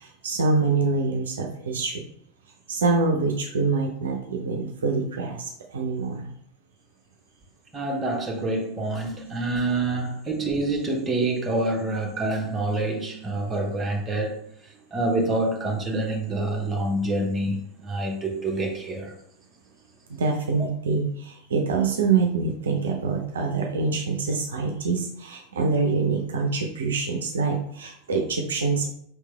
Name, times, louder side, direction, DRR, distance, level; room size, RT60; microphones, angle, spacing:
voice 1, 0.0-2.0 2.7-6.3 20.1-28.9, right 4 dB, 65° right, 0.5 m, -25 dB
voice 2, 7.7-14.4 14.9-19.1, right 2 dB, 15° right, 1.0 m, -27 dB
4.6 x 3.2 x 3.3 m
figure-of-eight pair, 85°, 0 cm